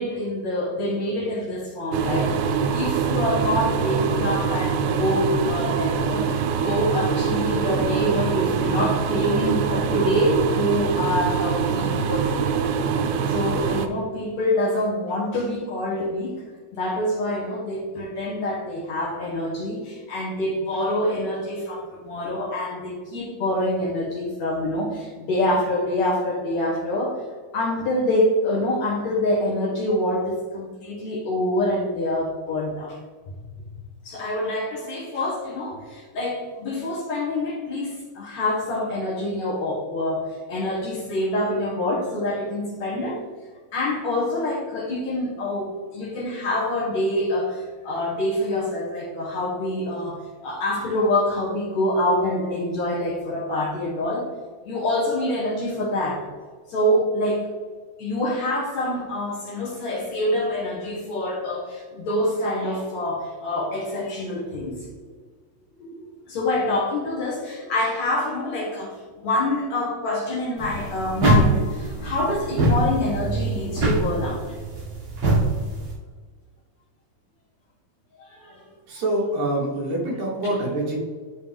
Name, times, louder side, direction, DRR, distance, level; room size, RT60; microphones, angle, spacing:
voice 1, 0.0-12.5 13.3-16.3 16.7-27.2 27.5-33.0 34.0-43.2 43.7-54.3 54.7-56.3 56.7-57.5 58.0-64.9 65.8-74.6 78.2-78.6 80.4-80.7, left 1 dB, 60° left, -4 dB, 2.3 m, -26 dB
sound 1, 1.9-13.9, right 6 dB, 80° right, 2.3 m, -24 dB
sound 2, 70.6-75.9, right 2 dB, 45° right, 2.6 m, -23 dB
voice 2, 78.9-81.0, right 1 dB, 60° right, -3 dB, 2.6 m, -25 dB
11.0 x 4.0 x 3.5 m, 1.5 s
omnidirectional pair, 4.1 m